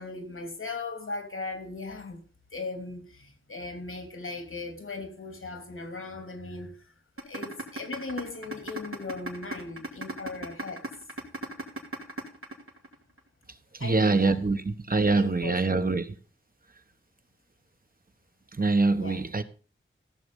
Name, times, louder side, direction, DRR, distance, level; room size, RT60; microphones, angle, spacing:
voice 1, 0.0-2.2 2.5-6.9 7.2-11.1 13.8-14.4 14.9-15.9 18.9-19.2, left 3 dB, 80° left, 2.9 m, -38 dB
sound 1, 7.2-13.2, right 2 dB, 85° right, 2.7 m, -35 dB
voice 2, 13.7-16.1 18.5-19.4, right 3 dB, 45° right, 1.2 m, -24 dB
15.0 x 7.1 x 5.4 m
wide cardioid pair, 50°, 21 cm